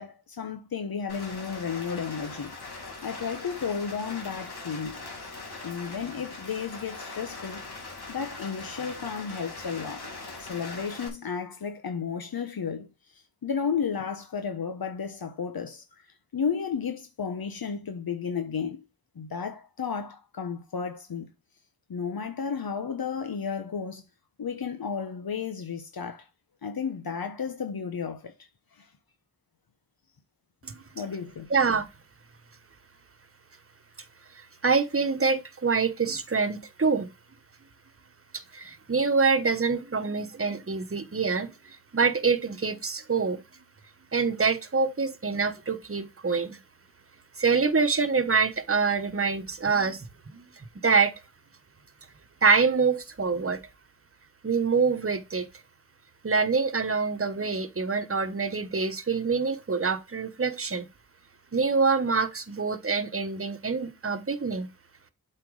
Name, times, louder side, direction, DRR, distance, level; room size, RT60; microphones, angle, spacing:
voice 1, 0.0-2.6 3.0-5.0 5.6-7.6 8.1-10.1 10.4-16.1 16.3-18.8 19.2-21.3 21.9-24.0 24.4-26.3 26.6-28.3 28.7-28.9 30.9-31.5, left 6 dB, 65° left, 1.0 m, -33 dB
Rain, 1.1-11.1, left 3 dB, 90° left, 2.4 m, -41 dB
voice 2, 31.5-31.9 34.4-37.1 38.3-43.4 44.1-46.6 47.4-50.4 50.8-51.1 52.4-53.6 54.4-55.5 56.2-60.9 61.5-64.7, right 4 dB, 35° right, 1.2 m, -25 dB
7.7 x 4.4 x 4.8 m
wide cardioid pair, 65°, 38 cm